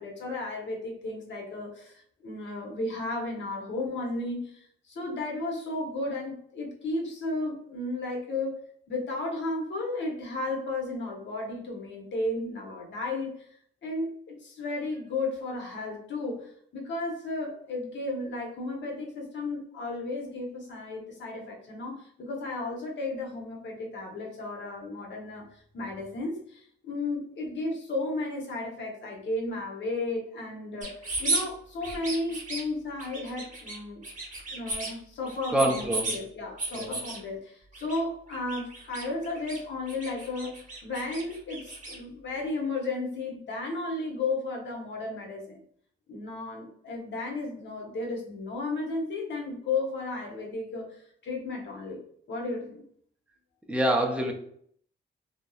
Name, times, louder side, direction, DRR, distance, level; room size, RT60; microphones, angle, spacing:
voice 1, 0.0-8.5 8.9-13.5 13.8-30.9 31.2-34.0 34.5-45.6 46.1-52.0 52.3-52.8, left 2 dB, 60° left, 0 dB, 0.8 m, -34 dB
sound 1, 30.8-31.4 31.8-32.6 33.0-33.8 34.0-34.9 35.3-36.2 36.6-37.2 37.7-38.0 38.3-39.6 39.9-42.0, right 2 dB, 40° right, 0.8 m, -34 dB
voice 2, 35.5-36.1 36.7-37.0 53.7-54.3, right 1 dB, 5° right, 1 dB, 0.5 m, -25 dB
2.6 x 2.0 x 2.3 m, 0.63 s
cardioid pair, 95°, 21 cm